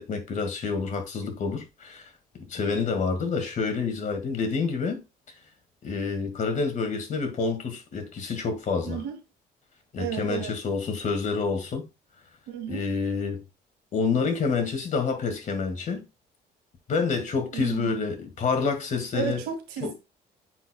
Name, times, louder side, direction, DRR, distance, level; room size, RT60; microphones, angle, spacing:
voice 1, 0.0-2.1 2.5-5.0 5.8-9.0 9.9-11.8 12.7-13.4 13.9-16.1 16.9-19.4 19.8-19.9, left 4 dB, 50° left, 2.1 m, -28 dB
voice 2, 8.9-9.2 10.0-10.6 12.5-12.8 17.5-17.9 19.1-19.9, right 7 dB, 85° right, 2.1 m, -32 dB
9.1 x 4.7 x 2.3 m
cardioid pair, 110°, 17 cm